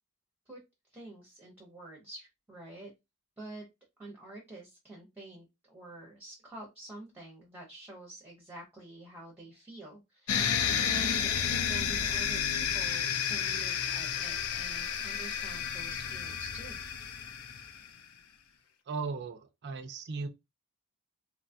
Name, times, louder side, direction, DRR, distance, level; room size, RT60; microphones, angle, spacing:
voice 1, 0.9-2.9 3.4-3.7 4.0-16.8, right 2 dB, 10° right, 0.7 m, -48 dB
sound 1, 10.3-17.9, left 7 dB, 70° left, 0.5 m, -31 dB
voice 2, 18.9-20.3, right 4 dB, 50° right, 0.4 m, -37 dB
2.8 x 2.2 x 2.7 m
head